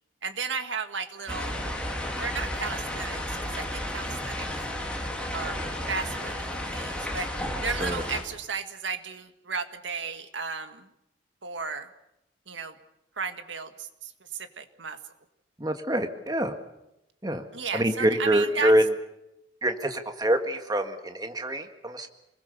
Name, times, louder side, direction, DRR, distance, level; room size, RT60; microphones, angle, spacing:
voice 1, 0.2-1.5 2.2-4.7 5.3-7.3 7.6-10.9 11.4-11.9 12.5-12.7 13.2-15.0 17.5-18.7, right 5 dB, 80° right, 8 dB, 1.8 m, -34 dB
sound 1, 1.3-8.2, left 1 dB, 5° left, 3.7 m, -32 dB
voice 2, 15.6-16.5 17.2-17.4 17.7-18.8 19.6-22.1, right 1 dB, 20° right, 6 dB, 1.7 m, -25 dB
27.5 x 21.0 x 6.8 m, 0.86 s
head